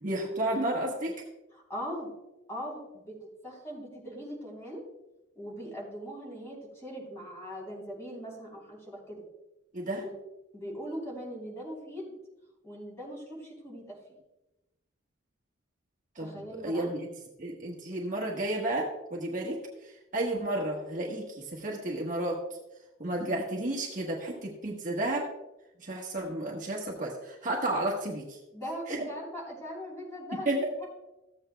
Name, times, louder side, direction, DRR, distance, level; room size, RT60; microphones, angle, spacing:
voice 1, 0.0-1.1 9.7-10.0 16.2-17.1 17.4-19.6 20.1-22.4 23.0-25.3 25.8-28.4 28.9-29.0 30.5-30.6, right 1 dB, 40° right, -2 dB, 1.2 m, -32 dB
voice 2, 1.5-2.1 2.5-3.1 3.4-4.8 5.3-9.2 10.0-10.1 10.5-12.1 12.6-14.0 16.2-16.9 28.5-30.9, equal, 15° left, -4 dB, 3.4 m, -40 dB
14.5 x 8.1 x 2.2 m, 0.97 s
head